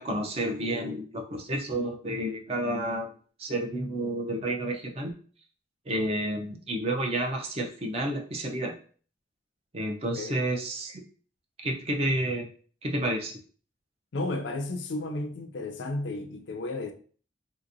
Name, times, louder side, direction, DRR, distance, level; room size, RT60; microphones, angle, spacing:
voice 1, 0.0-3.1 3.4-5.1 5.9-8.7 9.7-11.0 11.6-12.5 12.8-13.3, right 1 dB, 35° right, 0.5 m, -30 dB
voice 2, 14.1-16.9, left 2 dB, 90° left, 0.5 m, -33 dB
3.3 x 2.8 x 2.6 m
head